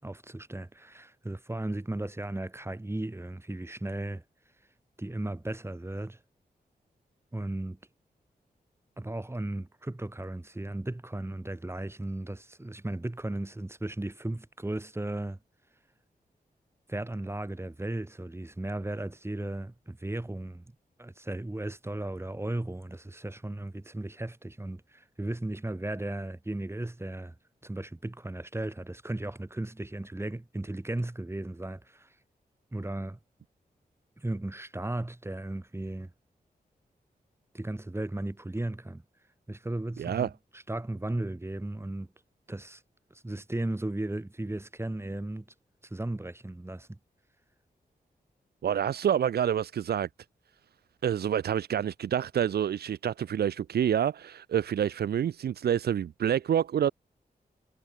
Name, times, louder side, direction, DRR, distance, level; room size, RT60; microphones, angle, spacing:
voice 1, 0.0-4.2 5.0-6.2 7.3-7.8 9.0-15.4 16.9-20.7 21.0-27.3 27.6-32.1 32.7-33.2 34.2-36.1 37.5-39.0 39.5-42.1 42.5-42.8 43.1-45.4 45.9-47.0, right 1 dB, 15° right, 5.9 m, -35 dB
voice 2, 40.0-40.3 48.6-50.1 51.0-56.9, right 9 dB, 85° right, 0.5 m, -27 dB
wide cardioid pair, 125°, 16 cm